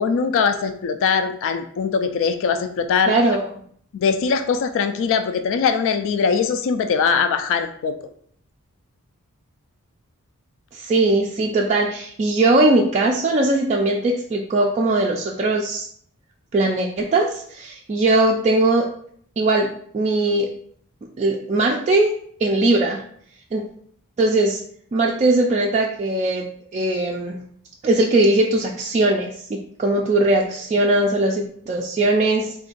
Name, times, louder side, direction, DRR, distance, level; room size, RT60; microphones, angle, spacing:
voice 1, 0.0-3.2 3.9-7.9, left 6 dB, 60° left, 9 dB, 0.3 m, -21 dB
voice 2, 3.1-3.5 10.7-15.9 16.5-18.9 19.4-19.7 19.9-20.5 21.2-22.1 22.4-23.0 23.5-23.6 24.2-24.6 24.9-26.5 26.7-27.4 27.8-32.5, right 2 dB, 30° right, -1 dB, 0.3 m, -20 dB
3.6 x 2.5 x 3.8 m, 0.63 s
head